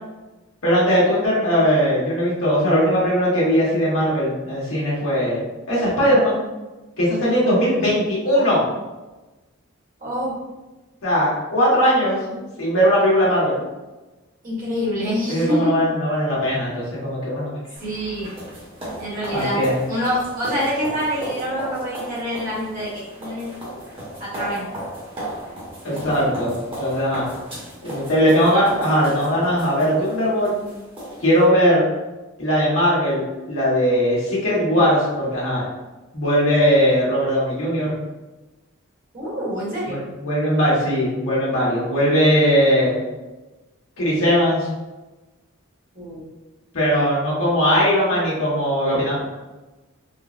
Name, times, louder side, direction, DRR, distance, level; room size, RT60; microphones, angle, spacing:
voice 1, 0.6-5.4 5.7-6.4 7.0-8.6 11.0-13.6 15.3-17.5 19.3-19.8 25.8-27.3 27.8-30.6 31.2-31.8 32.4-35.6 36.1-38.0 39.9-43.0 44.0-44.7 46.7-49.3, equal, 80° left, -7 dB, 1.3 m, -19 dB
voice 2, 10.0-10.4 14.4-15.7 17.8-18.3 19.0-19.6 19.9-23.5 24.2-24.7 28.5-28.7 39.1-40.0 45.9-46.2, equal, 40° right, -7 dB, 1.2 m, -26 dB
sound 1, 17.8-31.5, right 1 dB, 25° right, 1.0 m, -35 dB
3.7 x 2.0 x 2.5 m, 1.1 s
head